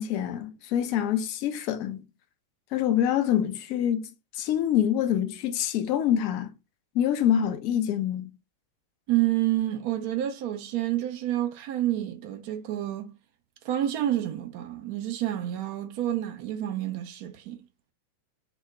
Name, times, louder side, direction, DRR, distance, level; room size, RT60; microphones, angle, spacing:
voice 1, 0.0-2.1 2.7-4.1 4.3-6.5 6.9-8.3, left 10 dB, 45° left, 0.3 m, -26 dB
voice 2, 9.1-13.1 13.6-17.6, right 13 dB, 45° right, 0.3 m, -29 dB
2.1 x 2.0 x 3.4 m
figure-of-eight pair, 90°, 0 cm